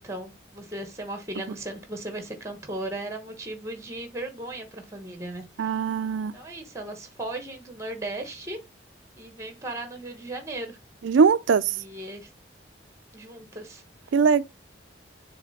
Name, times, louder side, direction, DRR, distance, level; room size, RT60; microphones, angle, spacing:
voice 1, 0.0-5.8 6.3-8.6 9.2-10.8 11.7-12.3 13.1-13.8, right 1 dB, 15° right, 1.2 m, -37 dB
voice 2, 5.6-6.3 11.0-11.7 14.1-14.4, right 5 dB, 80° right, 0.4 m, -21 dB
7.0 x 3.2 x 4.2 m
head